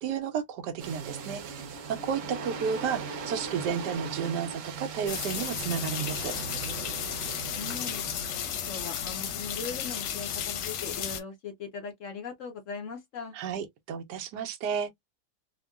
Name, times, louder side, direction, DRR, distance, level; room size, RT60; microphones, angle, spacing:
voice 1, 0.0-1.6 1.9-6.3 13.3-14.9, right 7 dB, 85° right, 1.2 m, -32 dB
sound 1, 0.8-10.6, right 5 dB, 60° right, 0.9 m, -40 dB
sound 2, 5.1-11.2, left 8 dB, 90° left, 1.3 m, -34 dB
voice 2, 7.2-13.3, left 5 dB, 65° left, 0.8 m, -40 dB
3.6 x 2.1 x 2.3 m
omnidirectional pair, 1.8 m